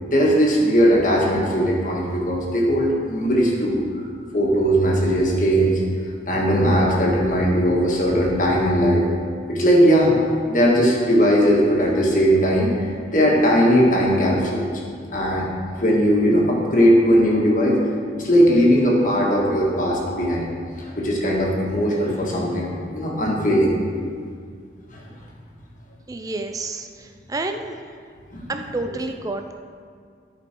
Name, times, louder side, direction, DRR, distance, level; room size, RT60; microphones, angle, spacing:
voice 1, 0.0-4.1 4.3-5.8 6.3-9.0 9.5-10.1 10.5-14.7 15.1-15.5 15.8-17.8 18.1-20.5 20.8-23.7 24.9-25.0 28.3-28.5, equal, 45° left, -3 dB, 1.8 m, -19 dB
voice 2, 26.1-27.8 28.5-29.5, right 2 dB, 20° right, 5 dB, 0.4 m, -29 dB
12.5 x 5.2 x 4.5 m, 2.1 s
head